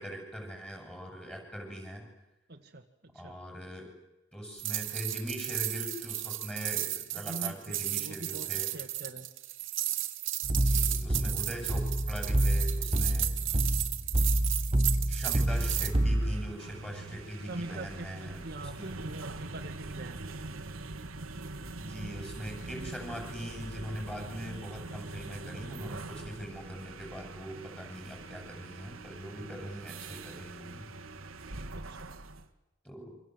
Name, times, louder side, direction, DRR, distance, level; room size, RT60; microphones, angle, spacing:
voice 1, 0.0-2.1 3.1-3.9 4.3-8.7 10.5-13.3 15.1-18.9 21.8-30.9 32.8-33.2, equal, 5° left, 2 dB, 7.4 m, -41 dB
voice 2, 2.5-3.4 7.2-9.3 17.5-20.2 31.7-32.2, right 2 dB, 50° right, 4 dB, 1.8 m, -43 dB
sound 1, 4.6-15.9, right 15 dB, 70° right, 2.2 m, -34 dB
sound 2, 10.4-16.5, right 1 dB, 30° right, 0.9 m, -28 dB
sound 3, 15.5-32.5, right 2 dB, 90° right, 1.9 m, -43 dB
28.0 x 25.5 x 7.9 m, 0.98 s
head